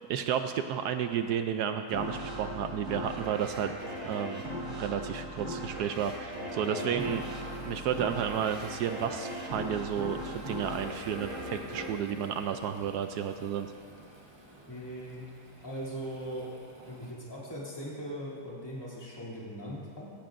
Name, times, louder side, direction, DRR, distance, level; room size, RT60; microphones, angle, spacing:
voice 1, 0.1-3.8 4.0-7.2 7.6-13.7, right 8 dB, 75° right, 8 dB, 1.1 m, -32 dB
sound 1, 1.9-13.1, equal, 40° right, 2.2 m, -39 dB
voice 2, 6.6-7.0 14.7-15.3 15.6-16.5 16.9-20.1, equal, 15° left, -7 dB, 2.7 m, -39 dB
Waves surf, 7.0-17.1, right 1 dB, 15° right, 1.1 m, -53 dB
17.5 x 15.0 x 2.6 m, 2.3 s
omnidirectional pair, 1.8 m